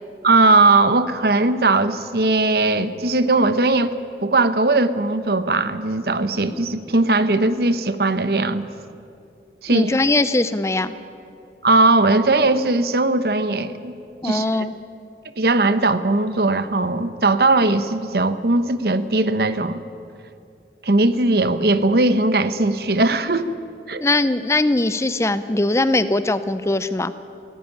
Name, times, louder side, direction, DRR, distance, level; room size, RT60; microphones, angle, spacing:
voice 1, 0.2-3.9 4.2-8.6 9.6-10.0 11.6-13.9 14.2-14.4 15.4-19.8 20.8-23.5 23.9-24.0, right 2 dB, 60° right, 12 dB, 0.9 m, -19 dB
voice 2, 9.7-10.9 14.2-14.7 24.0-27.1, left 2 dB, 15° left, 13 dB, 0.5 m, -20 dB
17.5 x 16.0 x 9.9 m, 2.5 s
head